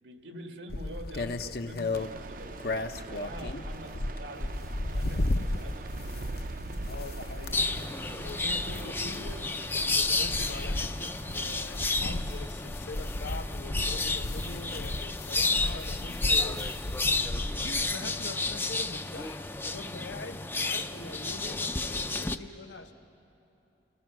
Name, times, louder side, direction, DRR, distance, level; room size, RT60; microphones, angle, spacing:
voice 1, 0.0-6.4, right 1 dB, 85° right, 4 dB, 1.6 m, -46 dB
sound 1, 0.7-17.9, left 2 dB, 60° left, 0.7 m, -35 dB
sound 2, 1.9-12.8, right 2 dB, 50° right, 0.5 m, -43 dB
voice 2, 6.9-9.4 9.7-16.9 17.6-22.9, left 3 dB, 85° left, 6 dB, 1.1 m, -43 dB
sound 3, 7.5-22.4, left 3 dB, 10° left, 0.4 m, -31 dB
30.0 x 19.0 x 6.1 m, 3.0 s
head